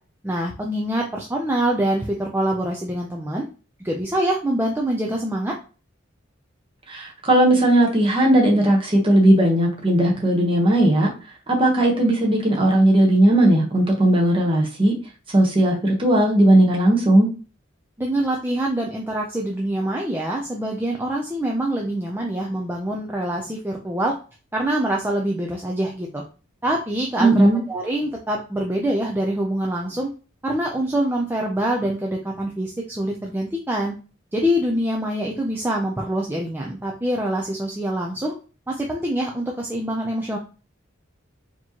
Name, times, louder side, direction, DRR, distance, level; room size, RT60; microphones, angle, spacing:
voice 1, 0.2-3.4 3.8-5.5 18.0-24.1 24.5-26.2 26.6-30.1 30.4-33.9 34.3-38.3 38.7-40.4, right 1 dB, 10° right, -1 dB, 0.4 m, -25 dB
voice 2, 6.9-11.1 11.5-14.9 15.3-17.3 27.2-27.6, right 1 dB, 25° right, 0 dB, 1.1 m, -17 dB
4.3 x 2.9 x 2.9 m, 0.35 s
head